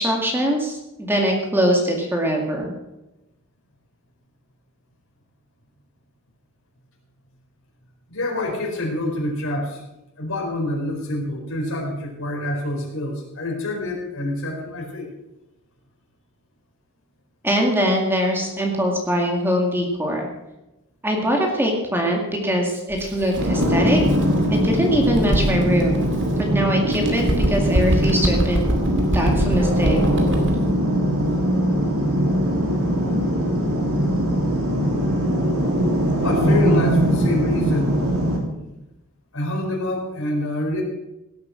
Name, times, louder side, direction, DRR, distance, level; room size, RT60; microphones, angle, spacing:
voice 1, 0.0-2.7 17.4-20.3 21.0-24.0 24.5-26.0 26.4-28.6 29.1-30.0, equal, 10° right, 1 dB, 2.0 m, -22 dB
voice 2, 8.1-9.8 10.2-15.1 36.1-38.0 39.3-40.8, left 1 dB, 65° left, -1 dB, 4.6 m, -26 dB
Bird, 22.9-26.5 26.9-30.7, right 1 dB, 55° right, 2.5 m, -25 dB
sound 1, 23.4-38.4, equal, 75° right, 3.2 m, -21 dB
17.0 x 8.6 x 6.2 m, 0.94 s
head